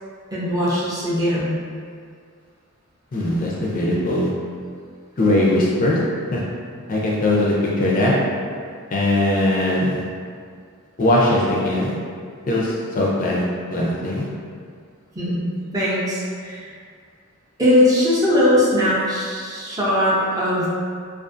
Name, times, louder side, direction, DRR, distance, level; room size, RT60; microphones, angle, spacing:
voice 1, 0.3-1.5 15.2-16.7 17.6-20.7, left 1 dB, 15° right, -8 dB, 0.5 m, -20 dB
voice 2, 3.1-4.3 5.2-6.0 6.3-6.4 6.9-8.1 8.9-10.0 11.0-11.9 12.5-13.4 13.7-14.3, left 1 dB, 40° left, -5 dB, 0.4 m, -20 dB
2.4 x 2.4 x 2.5 m, 2.1 s
head